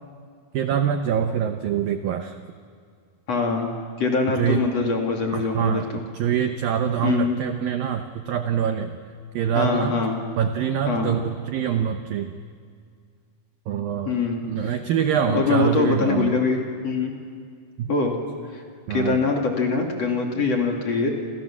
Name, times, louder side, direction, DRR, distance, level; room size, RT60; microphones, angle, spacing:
voice 1, 0.5-2.4 4.4-4.7 5.3-5.9 6.1-8.9 9.3-10.0 10.4-12.3 13.7-14.2 14.5-16.4 17.8-17.9 18.9-19.2, right 8 dB, 75° right, 7 dB, 2.1 m, -24 dB
voice 2, 3.3-3.7 4.0-6.0 7.0-7.4 9.5-10.2 10.9-11.2 14.0-14.7 15.3-17.1 17.9-18.1 18.5-18.6 18.9-21.1, left 4 dB, 40° left, 1 dB, 2.9 m, -23 dB
29.5 x 27.5 x 7.3 m, 2.1 s
omnidirectional pair, 5.4 m